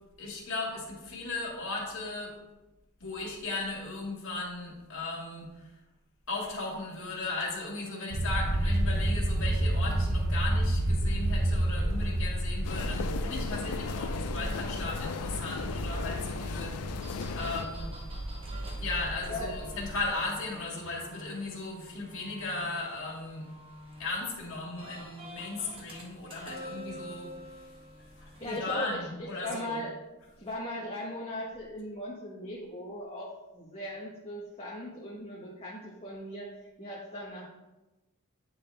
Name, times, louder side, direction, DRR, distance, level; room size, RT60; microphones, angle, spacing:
voice 1, 0.2-2.3 3.0-5.7 6.3-17.0 17.3-17.9 18.8-23.5 24.0-27.7 28.1-29.8 30.2-30.3, left 3 dB, 60° left, -3 dB, 2.1 m, -36 dB
sound 1, 8.1-20.1, right 1 dB, 65° right, 0.7 m, -31 dB
sound 2, 12.6-17.7, left 5 dB, 85° left, 0.4 m, -36 dB
sound 3, 13.5-28.8, equal, 25° right, 1.1 m, -49 dB
voice 2, 28.4-29.0 29.4-29.9 30.4-36.5 36.8-37.5, left 1 dB, 25° left, -5 dB, 1.1 m, -38 dB
9.7 x 4.1 x 3.3 m, 1.1 s
head